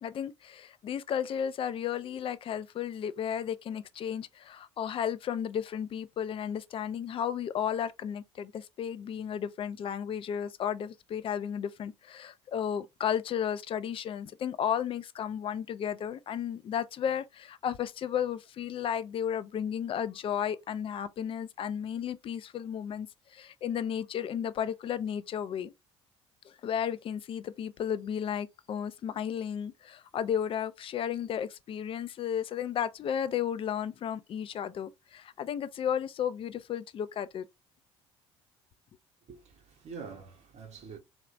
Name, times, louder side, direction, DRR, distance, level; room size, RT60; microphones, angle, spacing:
voice 1, 0.0-25.7 26.4-37.4, left 9 dB, 40° left, 0.3 m, -33 dB
voice 2, 39.3-41.0, right 5 dB, 50° right, 0.8 m, -45 dB
3.0 x 2.0 x 2.4 m
hypercardioid pair, 55°, 15 cm